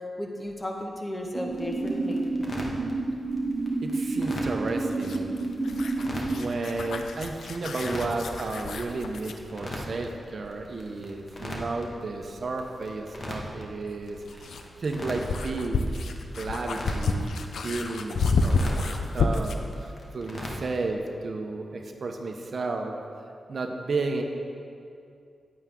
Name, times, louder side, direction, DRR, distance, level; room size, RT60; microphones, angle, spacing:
voice 1, 0.2-2.3, left 1 dB, 20° left, 0 dB, 1.5 m, -34 dB
sound 1, 1.3-6.4, right 3 dB, 45° right, 1.0 m, -29 dB
sound 2, 1.4-20.9, left 1 dB, 50° left, 1.7 m, -41 dB
voice 2, 3.8-5.4 6.3-14.5 14.8-15.9 16.3-17.3 17.6-23.0 23.5-24.2, right 3 dB, 60° right, 4 dB, 0.8 m, -32 dB
sound 3, 4.9-9.4 11.8-11.9 13.9-19.7, left 3 dB, 80° left, 0.6 m, -30 dB
9.6 x 8.9 x 3.7 m, 2.4 s
cardioid pair, 50°, 0 cm